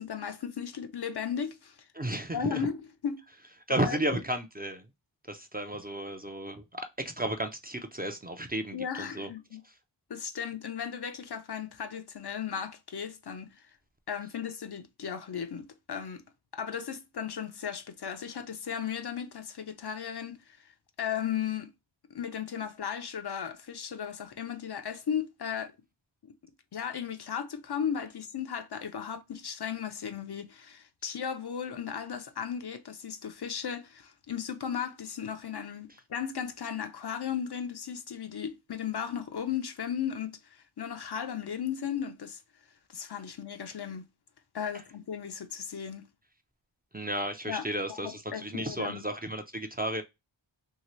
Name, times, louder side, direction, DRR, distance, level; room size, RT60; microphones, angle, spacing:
voice 1, 0.0-1.8 2.3-2.8 3.0-3.2 3.7-4.2 8.7-9.6 10.1-13.5 14.1-16.2 16.5-20.7 21.0-21.7 22.1-25.7 26.2-26.3 26.7-42.4 42.9-44.0 44.5-46.1 47.5-49.0, left 8 dB, 60° left, 0.5 m, -36 dB
voice 2, 1.9-2.7 3.7-4.9 5.3-9.3 46.9-50.0, right 1 dB, 20° right, 0.5 m, -33 dB
2.8 x 2.8 x 3.0 m
wide cardioid pair, 45°, 45 cm